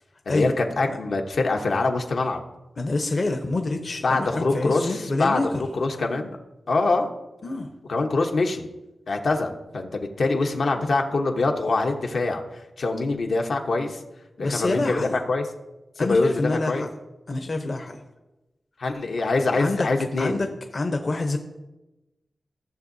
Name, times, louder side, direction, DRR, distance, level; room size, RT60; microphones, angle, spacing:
voice 1, 0.3-2.4 4.0-6.4 6.7-7.1 7.9-8.7 9.1-12.4 12.8-14.0 14.4-15.0 15.3-15.5 16.0-16.8 18.8-20.4, left 3 dB, 70° left, 2 dB, 1.0 m, -24 dB
voice 2, 2.8-5.6 7.4-7.7 14.4-15.2 16.0-16.9 17.3-18.0 19.5-19.9 20.2-21.4, left 2 dB, 45° left, 5 dB, 0.8 m, -27 dB
15.5 x 7.1 x 2.7 m, 1.0 s
wide cardioid pair, 110°, 0 cm